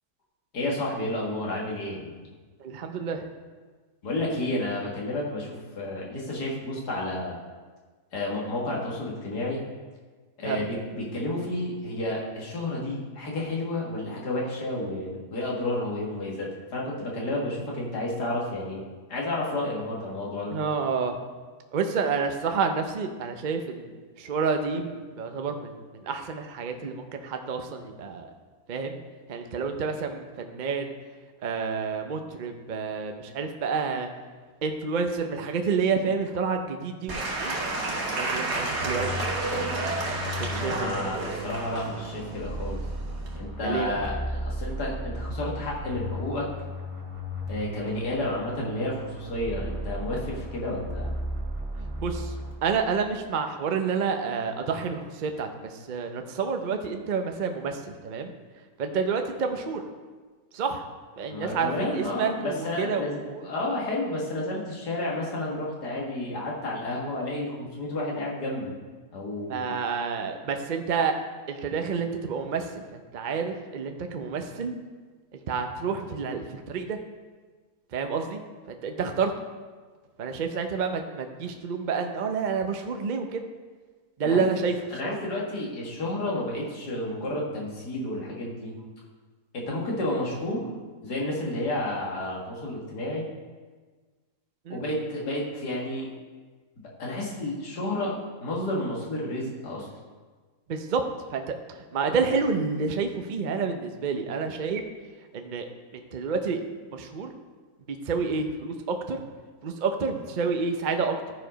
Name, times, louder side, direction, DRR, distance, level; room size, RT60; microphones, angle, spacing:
voice 1, 0.5-2.1 4.0-7.4 8.1-9.6 10.4-18.8 19.1-20.6 40.5-42.8 43.3-46.5 47.5-51.1 61.3-68.7 69.1-69.7 84.2-84.4 84.9-88.8 89.5-90.8 91.0-93.3 94.7-96.1 97.0-98.2 98.4-99.9, left 1 dB, 90° left, -3 dB, 2.4 m, -31 dB
voice 2, 2.6-3.3 10.4-10.6 20.5-21.2 21.7-28.3 28.7-29.0 29.3-31.0 31.4-34.1 34.6-39.1 40.4-40.9 43.6-44.0 51.8-52.3 52.6-58.3 58.8-59.8 60.5-60.9 61.2-63.5 69.5-71.2 71.5-74.7 75.3-77.0 77.9-78.4 78.7-79.3 80.2-83.5 84.2-84.7 85.0-85.2 94.7-94.8 100.7-101.0 101.3-101.4 101.7-104.8 105.3-105.7 105.9-106.6 106.9-107.3 107.9-109.2 109.6-111.2, right 5 dB, 50° right, 5 dB, 0.6 m, -29 dB
Applause / Crowd, 37.1-43.4, right 2 dB, 85° right, 2.0 m, -31 dB
sound 1, 38.8-52.9, equal, 20° right, 1.5 m, -35 dB
13.0 x 4.8 x 5.1 m, 1.4 s
omnidirectional pair, 1.7 m